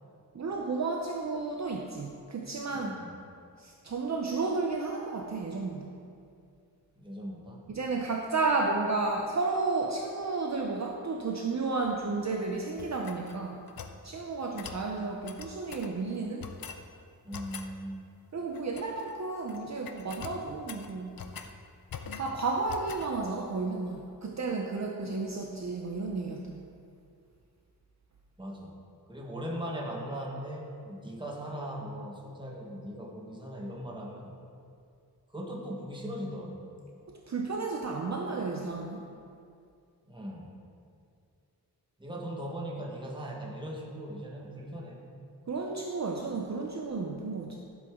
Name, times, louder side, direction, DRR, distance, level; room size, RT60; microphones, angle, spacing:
voice 1, 0.3-2.9 3.6-6.0 7.7-13.7 14.0-16.5 18.3-21.2 22.1-26.7 37.1-39.1 45.5-47.6, right 3 dB, 45° right, 1 dB, 0.7 m, -32 dB
voice 2, 2.7-3.1 6.9-7.6 17.2-18.0 28.4-28.8 29.1-34.3 35.3-36.7 40.0-40.6 42.0-45.1, equal, 10° right, -2 dB, 1.3 m, -39 dB
sound 1, 12.8-14.0 14.6-14.8 15.2-15.9 16.4-16.8 17.3-17.7 18.5-19.1 19.4-19.6 19.8-21.5 21.9-22.3 22.7-23.1, left 6 dB, 65° left, 0.6 m, -43 dB
12.0 x 7.8 x 3.7 m, 2.4 s
wide cardioid pair, 155°, 38 cm